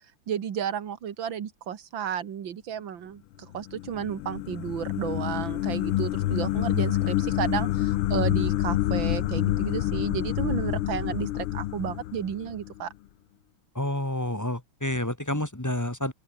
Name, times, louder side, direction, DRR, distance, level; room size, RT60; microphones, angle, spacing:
voice 1, 0.3-12.9, right 9 dB, 65° right, 2.3 m, -32 dB
sound 1, 3.5-12.8, left 14 dB, 85° left, 1.7 m, -27 dB
voice 2, 13.7-16.1, left 1 dB, 10° left, 1.5 m, -29 dB
open air
omnidirectional pair, 2.3 m